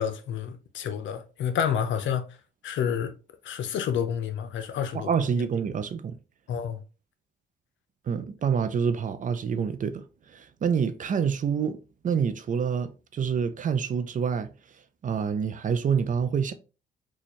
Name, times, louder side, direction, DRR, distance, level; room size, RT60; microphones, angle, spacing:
voice 1, 0.0-2.4 2.6-3.1 3.4-5.3 6.5-6.8, left 8 dB, 70° left, 0.6 m, -29 dB
voice 2, 4.9-6.2 8.1-11.8 12.0-14.5 15.0-16.5, right 6 dB, 40° right, 0.5 m, -27 dB
4.1 x 2.4 x 2.9 m
cardioid pair, 90°, 20 cm